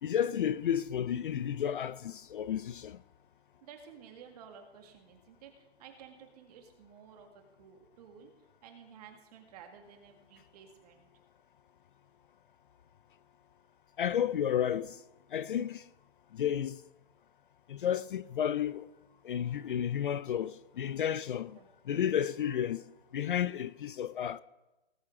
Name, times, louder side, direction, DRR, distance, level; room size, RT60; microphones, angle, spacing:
voice 1, 0.0-3.0 14.0-15.0 15.3-15.8 16.3-16.8 17.7-18.9 19.2-21.6 21.9-22.8 23.1-24.4, left 9 dB, 50° left, 0.4 m, -32 dB
voice 2, 3.6-8.3 8.6-11.1 21.6-21.7, right 7 dB, 35° right, 2.0 m, -53 dB
18.5 x 8.8 x 3.7 m
hypercardioid pair, 160°, 33 cm